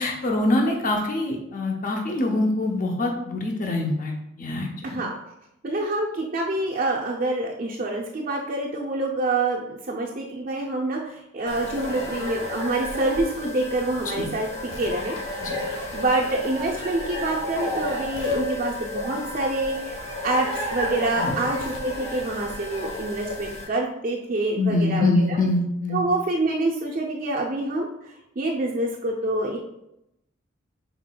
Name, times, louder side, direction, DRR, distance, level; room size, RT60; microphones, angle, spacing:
voice 1, 0.0-5.0 14.2-14.3 15.4-15.6 21.2-21.3 24.6-26.0, left 2 dB, 40° left, 1 dB, 0.6 m, -24 dB
voice 2, 5.6-15.2 15.9-25.4 25.9-29.6, right 2 dB, 45° right, -2 dB, 0.4 m, -26 dB
sound 1, 11.5-23.6, left 1 dB, 75° left, 1.0 m, -32 dB
5.8 x 4.0 x 2.2 m, 0.84 s
head